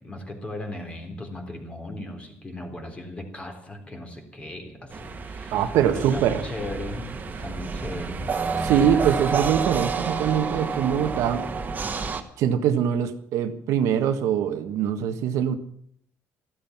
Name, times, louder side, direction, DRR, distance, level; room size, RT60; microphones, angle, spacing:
voice 1, 0.0-8.3, left 1 dB, 20° left, 4 dB, 3.8 m, -37 dB
sound 1, 4.9-12.2, right 5 dB, 35° right, 1.8 m, -29 dB
voice 2, 5.5-6.5 8.6-11.5 12.4-15.5, right 9 dB, 85° right, 8 dB, 1.4 m, -23 dB
14.0 x 13.0 x 7.3 m, 0.63 s
cardioid pair, 115°, 5 cm